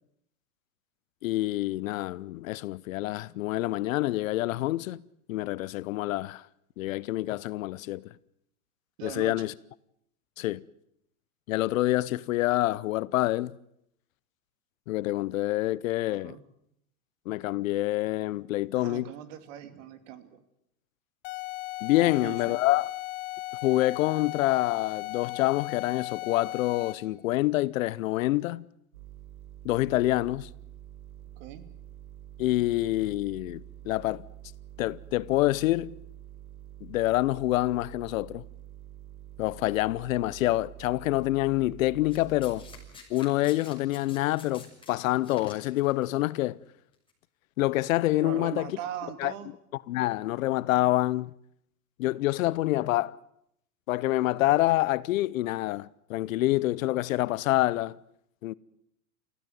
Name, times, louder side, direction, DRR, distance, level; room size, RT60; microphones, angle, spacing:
voice 1, 1.2-5.0 5.3-6.4 6.8-8.1 9.0-9.5 10.4-10.6 11.5-13.6 14.9-16.4 17.3-19.1 21.8-22.9 23.6-28.6 29.6-30.5 32.4-34.2 34.8-35.9 36.8-38.4 39.4-42.6 43.1-46.6 47.6-48.7 49.2-49.3 49.9-51.3 52.0-53.2 53.9-58.0 58.4-58.5, left 17 dB, 65° left, 0.9 m, -27 dB
voice 2, 9.0-9.4 16.1-16.4 18.7-20.4 22.0-22.6 31.4-31.7 48.2-49.5, right 10 dB, 60° right, 2.8 m, -40 dB
sound 1, 21.2-27.1, left 18 dB, 50° left, 1.5 m, -37 dB
sound 2, 28.9-42.9, right 12 dB, 80° right, 4.9 m, -47 dB
Domestic sounds home sounds, 42.1-46.0 46.9-47.1, left 5 dB, 10° left, 7.7 m, -49 dB
25.5 x 15.5 x 9.5 m
hypercardioid pair, 115°, 42 cm